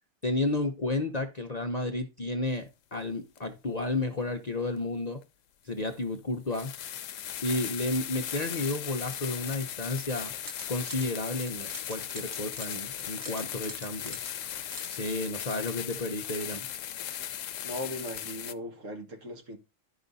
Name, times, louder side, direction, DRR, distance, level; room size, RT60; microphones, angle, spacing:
voice 1, 0.2-5.2 5.6-6.7 7.4-10.3 10.7-14.2 14.9-16.6, left 2 dB, 35° left, 0.7 m, -32 dB
sound 1, 3.3-3.4 5.2-5.3 5.9-6.0 6.5-18.5, left 10 dB, 70° left, 1.0 m, -38 dB
sound 2, 10.3-11.1 11.5-14.9, right 1 dB, 15° right, 0.9 m, -44 dB
voice 2, 17.6-19.6, left 1 dB, 65° right, 1.9 m, -38 dB
11.5 x 5.0 x 4.0 m
omnidirectional pair, 1.4 m